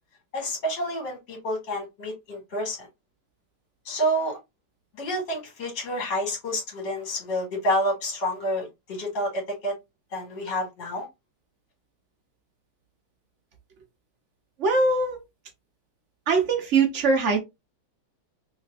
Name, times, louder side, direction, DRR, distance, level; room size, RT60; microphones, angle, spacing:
voice 1, 0.3-2.9 3.9-4.4 5.0-9.7 10.1-11.1, equal, 65° left, 2.3 m, -29 dB
voice 2, 14.6-15.2 16.3-17.4, right 4 dB, 60° right, 0.7 m, -22 dB
3.3 x 3.2 x 2.3 m
omnidirectional pair, 2.1 m